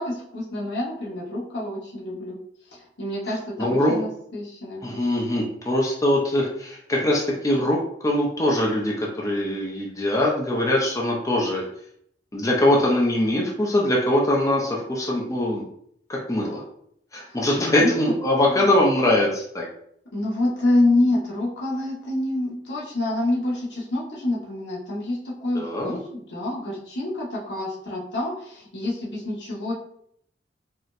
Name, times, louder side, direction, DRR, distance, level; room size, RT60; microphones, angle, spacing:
voice 1, 0.0-2.4 2.7-5.0 17.3-18.1 18.4-18.7 20.1-29.7, left 2 dB, 85° left, -4 dB, 1.0 m, -27 dB
voice 2, 3.6-4.0 4.8-11.7 12.3-15.6 16.1-16.6 17.1-19.7 25.6-26.0, left 1 dB, 20° left, -2 dB, 0.5 m, -22 dB
4.2 x 2.0 x 2.5 m, 0.68 s
head